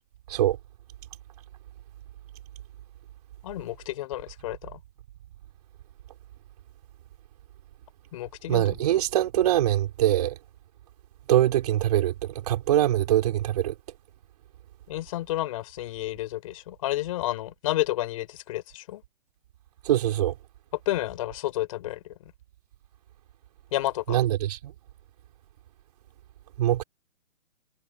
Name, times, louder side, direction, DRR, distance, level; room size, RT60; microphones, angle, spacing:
voice 1, 3.4-4.8 8.1-8.6 14.9-19.0 20.9-22.0 23.7-24.0, left 15 dB, 25° left, 3.5 m, -30 dB
voice 2, 8.5-10.3 11.3-12.1 12.5-13.7 19.8-20.3 24.1-24.7 26.6-26.8, right 12 dB, 30° right, 4.4 m, -23 dB
hypercardioid pair, 170°, 37 cm